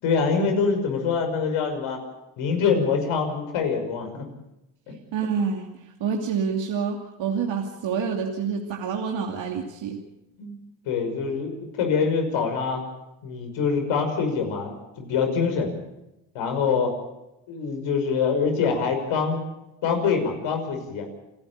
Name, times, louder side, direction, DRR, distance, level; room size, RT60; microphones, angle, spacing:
voice 1, 0.0-2.0 2.4-4.2 4.9-5.0 10.4-10.6 10.9-12.8 13.2-15.7 16.3-16.9 17.5-19.4 19.8-21.1, left 5 dB, 75° left, 5 dB, 5.9 m, -24 dB
voice 2, 5.1-5.7 6.0-10.0, right 6 dB, 65° right, 1 dB, 2.7 m, -27 dB
29.0 x 11.5 x 8.7 m, 0.93 s
supercardioid pair, 70°, 49 cm